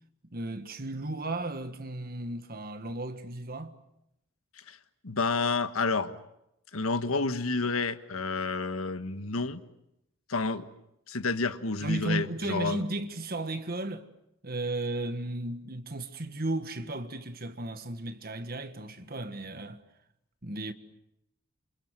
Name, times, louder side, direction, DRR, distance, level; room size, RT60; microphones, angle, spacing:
voice 1, 0.3-3.8 11.8-14.1 14.4-19.8 20.4-20.7, right 2 dB, 45° right, 1.6 m, -34 dB
voice 2, 5.0-6.2 6.7-9.6 10.3-10.7 11.1-12.8, left 3 dB, 80° left, 1.5 m, -30 dB
28.5 x 27.5 x 7.6 m
head